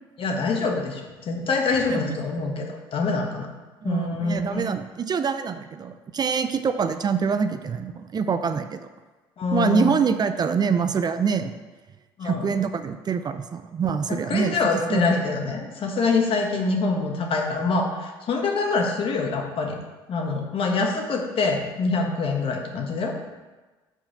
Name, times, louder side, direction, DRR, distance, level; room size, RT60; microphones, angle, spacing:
voice 1, 0.2-3.5 3.8-4.6 9.4-10.0 12.2-12.5 14.1-19.8 20.1-23.1, left 4 dB, 50° left, 1 dB, 1.4 m, -25 dB
voice 2, 3.8-8.9 9.5-11.5 12.2-15.0, right 6 dB, 35° right, 9 dB, 0.5 m, -25 dB
5.5 x 4.7 x 5.8 m, 1.2 s
hypercardioid pair, 65°, 12 cm